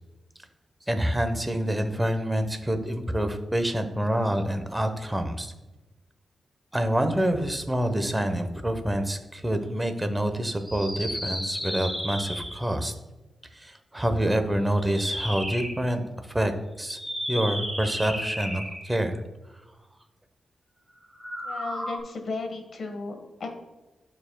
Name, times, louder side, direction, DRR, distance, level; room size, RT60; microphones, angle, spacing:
voice 1, 0.9-5.5 6.7-12.9 13.6-16.0 16.3-16.5 16.8-17.0 17.3-19.2, right 1 dB, 15° right, 7 dB, 0.8 m, -27 dB
sound 1, 10.6-12.8 14.8-15.8 16.8-19.0 21.1-22.0, equal, ahead, 1.6 m, -33 dB
voice 2, 21.4-23.5, left 3 dB, 65° left, 5 dB, 1.2 m, -35 dB
11.5 x 4.7 x 2.2 m, 1.1 s
cardioid pair, 80°, 0 cm